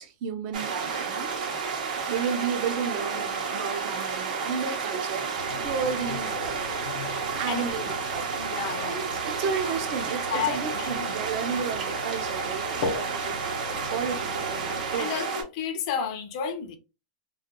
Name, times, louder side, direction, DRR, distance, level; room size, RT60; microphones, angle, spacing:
voice 1, 0.0-1.3 2.1-5.3 5.6-6.8 7.4-8.3 8.8-13.4 13.9-15.1, right 6 dB, 45° right, 0.5 m, -32 dB
sound 1, 0.5-15.4, right 5 dB, 85° right, 0.8 m, -31 dB
sound 2, 5.3-15.0, left 4 dB, 80° left, 0.8 m, -39 dB
voice 2, 7.3-7.7 8.4-9.2 10.3-11.1 15.0-16.8, left 8 dB, 50° left, 0.5 m, -32 dB
2.3 x 2.2 x 2.8 m
supercardioid pair, 160°, 4 cm